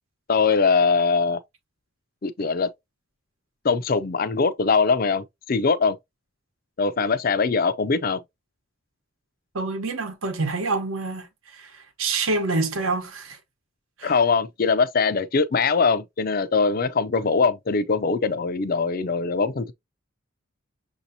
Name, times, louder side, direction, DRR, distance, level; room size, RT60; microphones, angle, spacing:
voice 1, 0.3-1.4 2.2-2.7 3.6-6.0 6.8-8.2 14.0-19.7, left 4 dB, 40° left, 0.4 m, -22 dB
voice 2, 9.5-11.3 11.5-13.4 14.0-14.1, right 3 dB, 70° right, 1.0 m, -27 dB
6.7 x 2.8 x 2.7 m
head